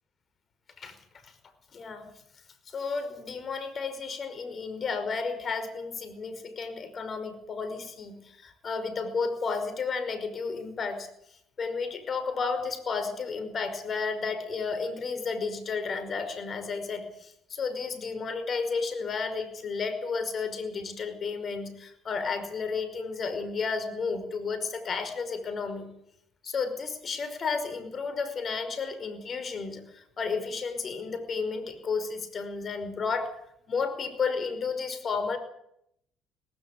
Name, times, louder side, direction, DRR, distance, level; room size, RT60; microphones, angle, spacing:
voice 1, 1.7-2.1 2.7-11.1 11.6-25.9 26.4-33.3 33.7-35.4, left 4 dB, 45° left, 10 dB, 5.3 m, -32 dB
19.0 x 16.5 x 8.4 m, 0.73 s
supercardioid pair, 65°, 0 cm